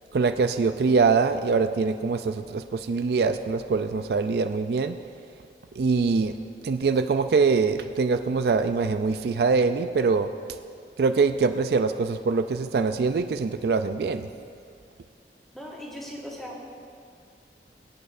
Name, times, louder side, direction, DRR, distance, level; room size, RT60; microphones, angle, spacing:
voice 1, 0.1-5.0 5.8-6.3 6.6-10.3 11.0-14.3, right 4 dB, 65° right, 9 dB, 0.4 m, -23 dB
voice 2, 15.5-16.7, equal, ahead, -4 dB, 1.5 m, -38 dB
24.0 x 8.7 x 2.6 m, 2.3 s
head